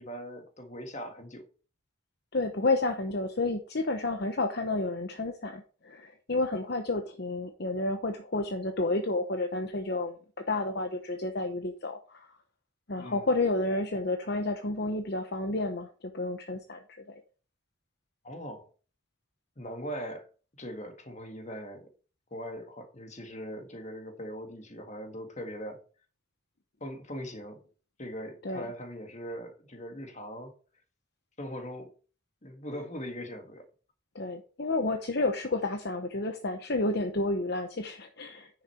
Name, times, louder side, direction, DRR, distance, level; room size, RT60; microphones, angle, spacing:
voice 1, 0.0-1.4 13.0-13.3 18.2-18.7 19.6-20.3 20.6-21.9 22.3-25.8 26.8-27.6 28.0-30.5 31.4-31.9 32.4-33.7, equal, 35° left, 1.7 m, -40 dB
voice 2, 2.3-10.1 10.5-12.3 12.9-16.8 17.1-17.2 28.4-28.7 34.1-38.5, left 2 dB, 50° left, 0.9 m, -30 dB
10.0 x 6.4 x 4.4 m
head